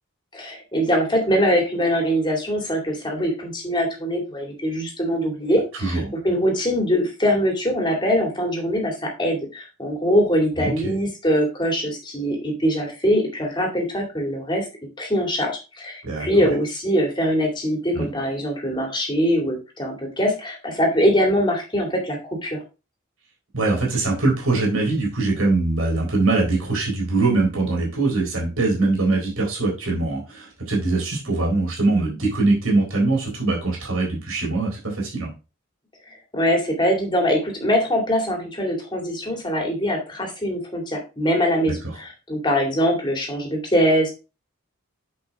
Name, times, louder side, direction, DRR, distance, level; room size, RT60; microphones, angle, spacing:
voice 1, 0.3-14.7 15.0-22.6 36.3-44.1, equal, 20° left, 1 dB, 2.3 m, -22 dB
voice 2, 5.8-6.1 10.6-10.9 16.0-16.5 17.9-18.1 23.5-35.3 41.6-41.7, right 3 dB, 80° right, -1 dB, 3.9 m, -22 dB
9.0 x 5.3 x 3.5 m, 0.31 s
head